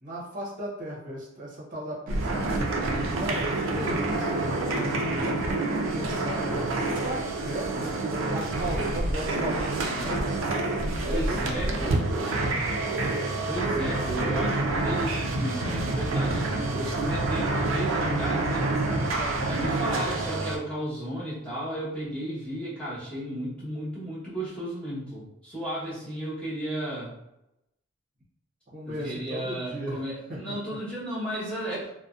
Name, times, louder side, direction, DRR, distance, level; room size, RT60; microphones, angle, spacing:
voice 1, 0.0-10.4 11.0-12.6 19.2-19.6 28.7-30.0 30.3-30.4, right 1 dB, 45° right, -4 dB, 0.7 m, -36 dB
sound 1, 2.1-20.6, right 2 dB, 90° right, 0.4 m, -27 dB
voice 2, 11.1-12.0 13.4-18.7 19.4-27.1 28.9-31.9, right 1 dB, 5° left, -10 dB, 1.0 m, -34 dB
2.5 x 2.1 x 2.3 m, 0.87 s
head